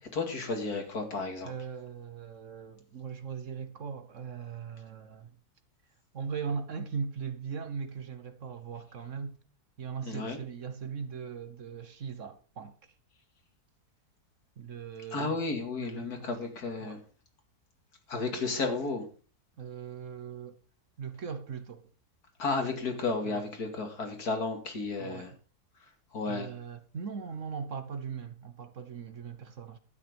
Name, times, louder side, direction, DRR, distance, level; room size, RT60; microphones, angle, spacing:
voice 1, 0.0-1.5 10.0-10.4 15.1-17.0 18.1-19.1 22.4-25.3 26.1-26.5, left 3 dB, 70° left, 2.8 m, -33 dB
voice 2, 1.4-5.3 6.1-9.4 9.8-12.8 14.6-15.4 15.7-16.4 16.8-17.0 19.6-20.6 21.0-21.9 23.2-23.4 25.0-25.4 26.3-29.8, right 6 dB, 55° right, 1.3 m, -39 dB
12.5 x 8.9 x 5.2 m
omnidirectional pair, 1.7 m